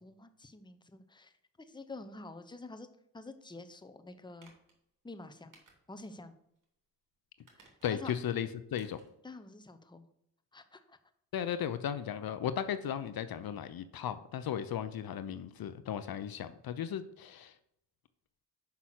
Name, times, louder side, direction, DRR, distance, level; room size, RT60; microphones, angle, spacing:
voice 1, 0.0-2.9 3.1-4.5 5.0-5.6 5.9-6.3 7.5-8.1 9.2-10.1 10.5-11.0, left 2 dB, 10° left, 9 dB, 0.9 m, -48 dB
sound 1, 4.4-4.8 5.5-6.2 6.6-6.7 7.4-8.1 8.7-9.1 9.5-9.6, right 3 dB, 55° right, 2.7 m, -62 dB
voice 2, 7.8-9.0 11.3-17.5, left 9 dB, 65° left, 12 dB, 0.7 m, -36 dB
5.8 x 5.6 x 6.4 m, 0.76 s
cardioid pair, 65°, 39 cm